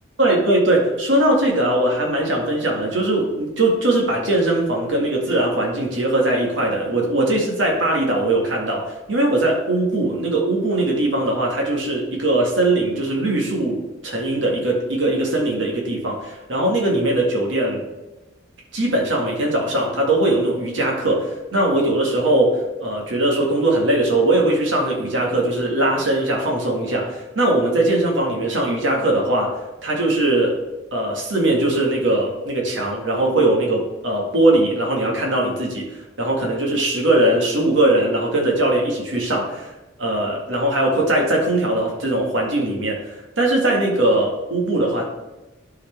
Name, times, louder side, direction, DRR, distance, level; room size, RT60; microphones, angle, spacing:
voice 1, 0.2-17.8 18.7-29.5 29.8-30.6 30.9-35.9 36.2-39.7 40.0-43.0 43.4-45.0, right 1 dB, 70° right, -1 dB, 2.0 m, -20 dB
12.0 x 4.8 x 3.5 m, 1.1 s
head